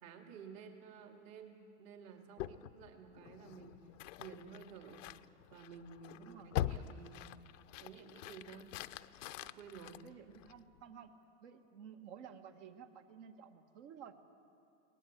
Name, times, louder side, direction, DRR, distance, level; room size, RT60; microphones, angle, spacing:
voice 1, 0.0-3.8 4.2-5.1 5.5-7.3 7.8-8.7 9.4-10.0, right 6 dB, 55° right, 4 dB, 2.3 m, -53 dB
sound 1, 2.4-10.8, left 13 dB, 85° left, 0.7 m, -44 dB
voice 2, 6.2-6.5 10.0-11.2 11.4-14.2, right 8 dB, 75° right, 6 dB, 1.9 m, -53 dB
21.5 x 18.0 x 8.1 m, 2.7 s
supercardioid pair, 125°, 37 cm